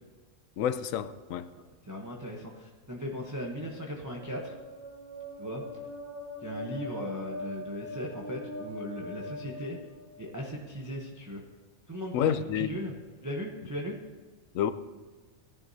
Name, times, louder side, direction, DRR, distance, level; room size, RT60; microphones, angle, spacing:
voice 1, 0.6-1.5 12.1-12.8 14.5-14.7, left 9 dB, 85° left, 12 dB, 1.0 m, -29 dB
voice 2, 1.9-4.5 5.4-5.6 6.4-9.8 10.2-11.4 11.9-12.9 13.2-14.0, equal, 15° right, -1 dB, 0.9 m, -37 dB
sound 1, 3.7-10.5, left 2 dB, 10° left, 1.3 m, -42 dB
17.5 x 10.5 x 2.7 m, 1.4 s
omnidirectional pair, 1.4 m